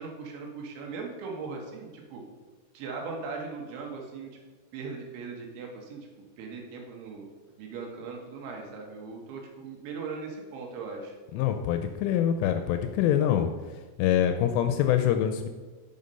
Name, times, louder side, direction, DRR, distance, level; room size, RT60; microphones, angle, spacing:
voice 1, 0.0-2.2 2.7-4.3 4.7-6.1 6.4-7.2 7.6-11.1, right 4 dB, 70° right, 1 dB, 3.4 m, -39 dB
voice 2, 11.3-13.5 14.0-15.5, left 10 dB, 80° left, 7 dB, 2.9 m, -25 dB
9.3 x 6.3 x 5.4 m, 1.4 s
omnidirectional pair, 6.0 m